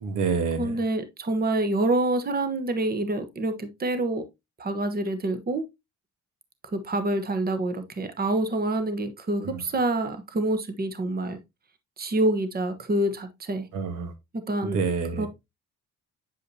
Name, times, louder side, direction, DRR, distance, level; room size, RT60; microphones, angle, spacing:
voice 1, 0.0-0.8 9.4-9.6 13.7-14.1 14.6-15.3, right 5 dB, 90° right, 1.4 m, -28 dB
voice 2, 0.6-4.2 4.6-5.6 6.7-11.4 12.0-13.7 14.3-14.8 15.2-15.3, right 2 dB, 30° right, 1.1 m, -27 dB
8.2 x 4.9 x 2.8 m
cardioid pair, 90°, 30 cm